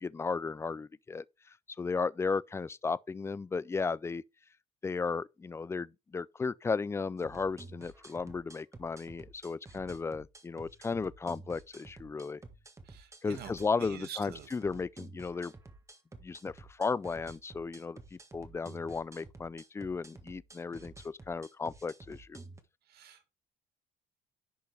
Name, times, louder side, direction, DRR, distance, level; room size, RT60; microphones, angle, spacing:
voice 1, 0.0-1.2 1.8-4.2 4.8-12.4 13.2-15.5 16.2-22.4, left 4 dB, 15° left, 0.4 m, -35 dB
sound 1, 7.2-22.6, right 2 dB, 15° right, 1.5 m, -51 dB
voice 2, 12.9-13.5 13.8-14.5 22.9-23.3, right 9 dB, 70° right, 1.9 m, -46 dB
10.5 x 5.5 x 3.4 m
cardioid pair, 110°, 17 cm